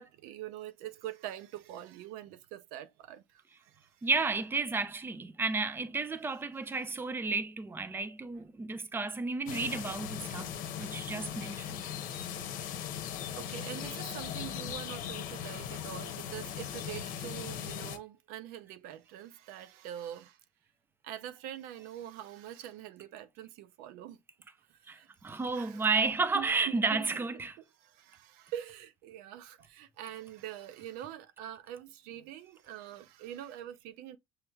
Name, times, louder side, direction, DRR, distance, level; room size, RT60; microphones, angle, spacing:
voice 1, 0.0-4.1 6.6-6.7 13.4-20.4 21.0-24.2 24.7-25.9 26.3-27.1 27.8-34.2, right 11 dB, 85° right, 0.5 m, -44 dB
voice 2, 4.0-10.5 10.8-11.8 24.9-27.6, right 4 dB, 15° right, 0.5 m, -32 dB
sound 1, 9.5-18.0, left 9 dB, 70° left, 0.8 m, -39 dB
6.1 x 3.2 x 2.3 m
cardioid pair, 115°, 15 cm